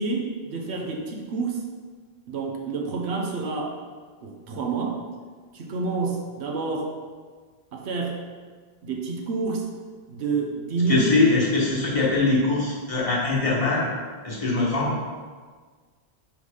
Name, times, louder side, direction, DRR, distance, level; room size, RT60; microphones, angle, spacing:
voice 1, 0.0-1.6 2.3-3.8 4.2-5.0 5.5-6.9 7.7-8.2 8.8-9.7 10.1-11.1, right 4 dB, 85° right, 1 dB, 1.1 m, -28 dB
voice 2, 10.9-13.9 14.2-14.9, left 3 dB, 35° left, -6 dB, 1.3 m, -22 dB
5.4 x 3.7 x 4.9 m, 1.5 s
omnidirectional pair, 1.1 m